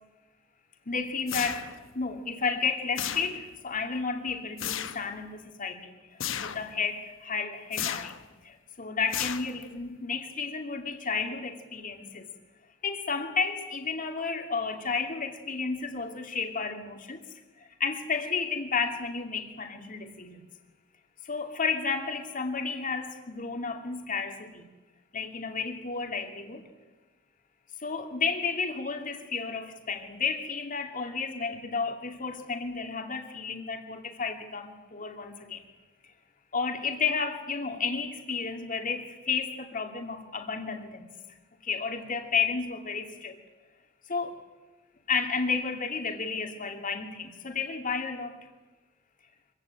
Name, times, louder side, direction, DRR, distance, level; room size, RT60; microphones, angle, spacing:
voice 1, 0.9-8.1 8.4-12.3 12.8-17.2 17.6-20.5 21.2-24.7 25.1-26.6 27.8-35.6 36.5-41.1 41.6-43.4 44.1-44.4 45.1-48.4, left 5 dB, 45° left, 4 dB, 2.5 m, -32 dB
sound 1, 1.3-1.9 3.0-3.6 4.6-5.1 6.2-6.7 7.7-8.3 9.1-9.8, left 10 dB, 75° left, 1.0 m, -34 dB
24.5 x 15.5 x 9.0 m, 1.2 s
head